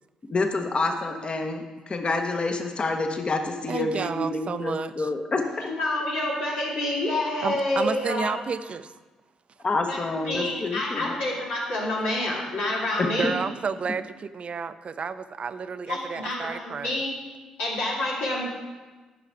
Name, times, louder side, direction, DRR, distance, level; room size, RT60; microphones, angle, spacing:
voice 1, 0.3-5.7 9.6-11.2 13.0-13.3, left 3 dB, 40° left, 5 dB, 1.0 m, -28 dB
voice 2, 3.7-5.1 7.4-8.9 13.2-17.0, right 5 dB, 50° right, 13 dB, 0.4 m, -31 dB
voice 3, 5.6-8.3 9.9-13.4 15.9-17.1 17.6-18.5, left 1 dB, 90° left, -5 dB, 2.2 m, -28 dB
9.8 x 5.8 x 4.5 m, 1.3 s
supercardioid pair, 50°, 3 cm